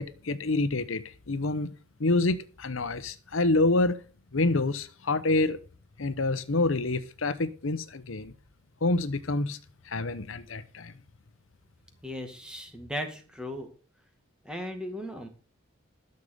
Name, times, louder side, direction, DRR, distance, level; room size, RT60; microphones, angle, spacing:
voice 1, 0.0-1.7 2.0-4.0 4.3-5.6 6.0-8.3 8.8-9.6 9.8-10.9, left 2 dB, 80° left, 0.9 m, -27 dB
voice 2, 12.0-13.7 14.5-15.3, equal, 5° right, 2.1 m, -37 dB
12.5 x 6.7 x 6.6 m
head